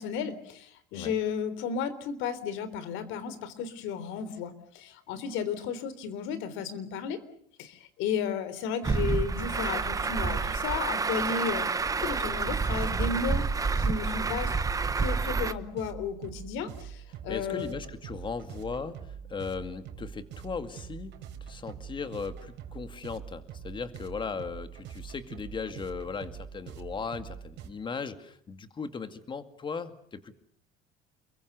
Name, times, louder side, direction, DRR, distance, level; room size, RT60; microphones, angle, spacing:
voice 1, 0.0-7.2 7.6-11.7 12.0-13.5 13.8-14.6 15.0-17.7, left 6 dB, 80° left, 14 dB, 3.7 m, -33 dB
Truck, 8.8-15.5, right 4 dB, 15° right, 1.0 m, -28 dB
sound 1, 15.5-27.7, right 8 dB, 65° right, 4.0 m, -44 dB
voice 2, 17.3-19.0 19.3-30.3, left 5 dB, 25° left, 10 dB, 2.2 m, -37 dB
29.0 x 23.0 x 6.8 m, 0.65 s
cardioid pair, 145°, 20 cm